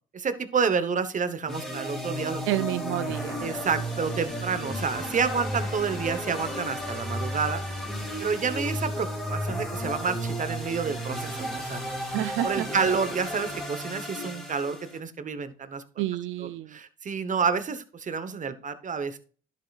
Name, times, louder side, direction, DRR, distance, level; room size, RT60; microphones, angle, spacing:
voice 1, 0.1-2.4 3.4-7.6 8.2-12.2 12.4-15.8 16.4-19.2, right 5 dB, 40° right, 11 dB, 1.0 m, -29 dB
sound 1, 1.5-15.0, equal, ahead, 2.8 m, -33 dB
voice 2, 2.5-3.4 12.1-12.8 16.0-16.7, right 14 dB, 90° right, 13 dB, 0.4 m, -29 dB
sound 2, 3.0-13.6, left 3 dB, 65° left, 3.6 m, -48 dB
11.5 x 7.4 x 2.4 m, 0.41 s
cardioid pair, 90°, 20 cm